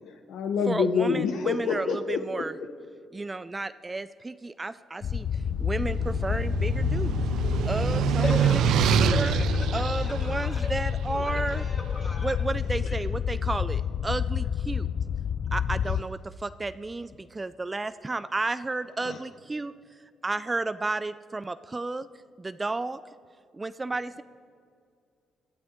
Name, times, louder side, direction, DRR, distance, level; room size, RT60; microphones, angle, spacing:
voice 1, 0.0-2.4 15.9-16.0 19.0-19.2, left 6 dB, 75° left, 6 dB, 0.8 m, -27 dB
voice 2, 0.7-2.5 3.1-5.3 5.6-7.2 7.7-8.5 9.2-9.3 9.7-11.6 12.2-14.9 15.5-19.7 20.2-22.1 22.4-23.0 23.6-24.2, right 3 dB, 20° right, 14 dB, 0.3 m, -32 dB
sound 1, 5.0-16.0, left 8 dB, 55° left, 0.3 m, -29 dB
sound 2, 5.4-11.7, right 9 dB, 80° right, 0.5 m, -26 dB
voice 3, 8.2-10.7 11.0-12.3 12.8-12.9, left 2 dB, 40° left, -2 dB, 3.6 m, -37 dB
18.5 x 12.5 x 3.7 m, 2.3 s
cardioid pair, 90°, 0 cm